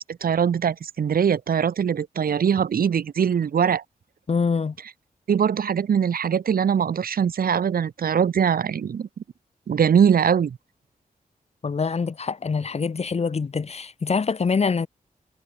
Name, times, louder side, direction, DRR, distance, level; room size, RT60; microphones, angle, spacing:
voice 1, 0.2-3.8 5.3-9.1 9.7-10.6, right 7 dB, 90° right, 3.2 m, -22 dB
voice 2, 4.3-4.8 11.6-14.9, left 5 dB, 45° left, 5.5 m, -25 dB
wide cardioid pair, 155°, 15 cm